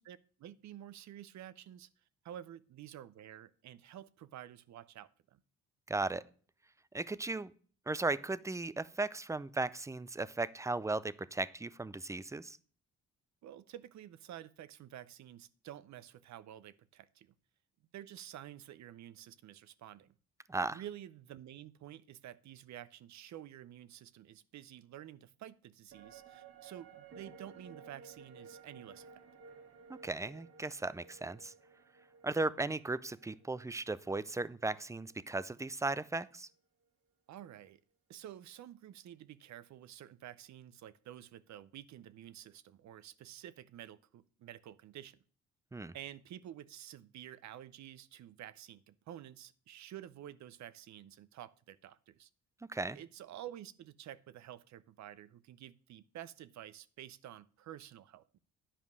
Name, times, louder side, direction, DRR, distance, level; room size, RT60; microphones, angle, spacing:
voice 1, 0.0-1.9 2.2-5.4 13.4-17.3 17.9-20.1 20.7-29.2 37.3-37.8 38.1-45.2 45.9-52.3 52.9-58.4, right 11 dB, 65° right, 17 dB, 0.7 m, -50 dB
voice 2, 5.9-6.2 6.9-7.5 7.9-12.6 20.5-20.8 29.9-31.5 32.2-36.5 45.7-45.9 52.7-53.0, right 3 dB, 10° right, 17 dB, 0.5 m, -36 dB
sound 1, 25.9-35.4 35.7-35.8, right 5 dB, 50° right, 1.3 m, -56 dB
10.0 x 5.3 x 6.2 m, 0.43 s
cardioid pair, 90°, 30 cm